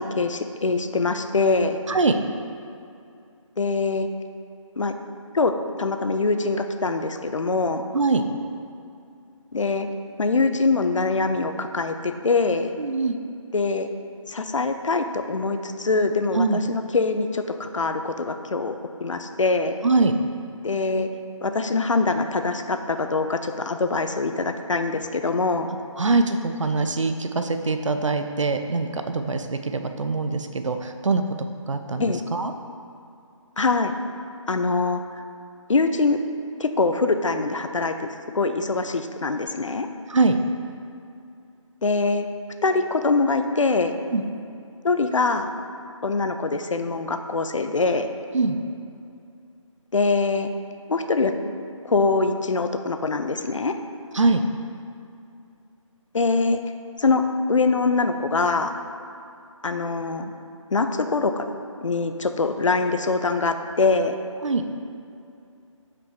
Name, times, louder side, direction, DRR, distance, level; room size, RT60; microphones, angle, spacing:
voice 1, 0.0-1.8 3.6-4.1 4.8-4.9 5.3-7.8 9.5-9.9 10.2-12.7 13.5-13.9 14.3-19.7 20.6-21.1 21.4-25.7 32.0-32.2 33.6-33.9 34.5-35.0 35.7-36.2 36.6-38.1 38.3-39.9 41.8-42.3 42.6-43.9 44.8-45.5 46.0-48.1 49.9-50.5 50.9-51.3 51.8-53.7 56.1-56.6 57.0-57.2 57.5-58.7 59.6-60.3 60.7-61.4 61.8-64.2, left 3 dB, 70° left, 7 dB, 0.6 m, -23 dB
voice 2, 12.8-13.2 16.4-16.6 19.8-20.1 26.0-32.1 32.3-32.5 40.1-40.4 44.1-44.2 48.3-48.6 54.1-54.4 64.4-64.6, right 3 dB, 65° right, 7 dB, 0.6 m, -23 dB
5.9 x 5.1 x 4.6 m, 2.5 s
figure-of-eight pair, 155°, 17 cm